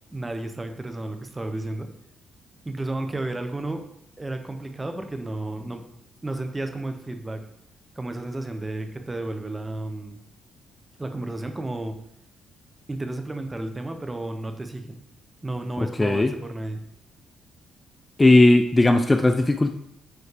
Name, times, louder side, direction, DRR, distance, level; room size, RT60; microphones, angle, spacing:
voice 1, 0.1-1.9 2.6-3.8 4.2-5.8 6.2-7.4 7.9-10.2 11.0-12.0 12.9-15.0 15.4-16.8, right 2 dB, 15° right, 6 dB, 1.1 m, -32 dB
voice 2, 15.8-16.3 18.2-19.7, left 2 dB, 20° left, 7 dB, 0.5 m, -17 dB
9.7 x 4.2 x 4.9 m, 0.79 s
cardioid pair, 90°, 0 cm